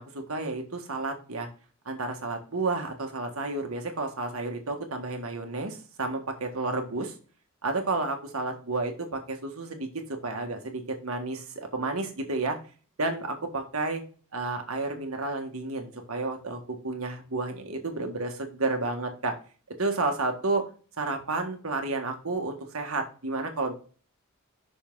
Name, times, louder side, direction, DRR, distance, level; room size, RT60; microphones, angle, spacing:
voice 1, 0.0-1.5 1.8-7.1 7.6-9.9 10.2-12.6 13.0-14.0 14.3-19.3 19.8-20.7 21.0-23.7, right 3 dB, 80° right, 4 dB, 1.6 m, -31 dB
6.1 x 5.5 x 3.9 m, 0.38 s
head